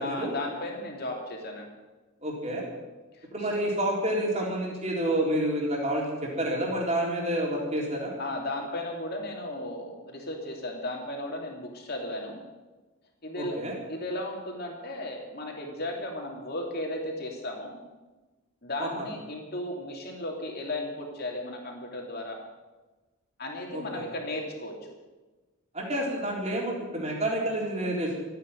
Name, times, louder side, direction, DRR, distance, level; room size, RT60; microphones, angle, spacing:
voice 1, 0.0-1.7 3.1-3.3 8.2-12.4 13.2-13.6 13.9-17.8 18.6-22.4 23.4-24.9, left 1 dB, 45° left, 1 dB, 3.1 m, -35 dB
voice 2, 2.2-2.6 3.3-8.1 13.4-13.8 18.8-19.1 23.7-24.0 25.7-28.2, right 1 dB, 30° right, -2 dB, 3.8 m, -29 dB
14.5 x 9.3 x 9.2 m, 1.2 s
head